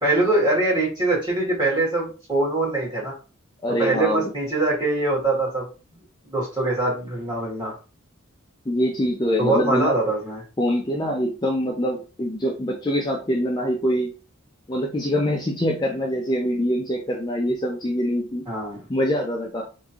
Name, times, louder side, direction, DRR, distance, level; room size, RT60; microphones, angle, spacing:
voice 1, 0.0-3.2 3.8-5.7 6.2-7.8 9.4-10.4 18.5-18.8, right 2 dB, 20° right, -6 dB, 2.0 m, -23 dB
voice 2, 3.6-4.3 8.7-9.9 10.6-14.1 14.7-18.5 18.9-19.6, equal, 20° left, 0 dB, 0.5 m, -24 dB
3.6 x 2.7 x 2.8 m, 0.34 s
head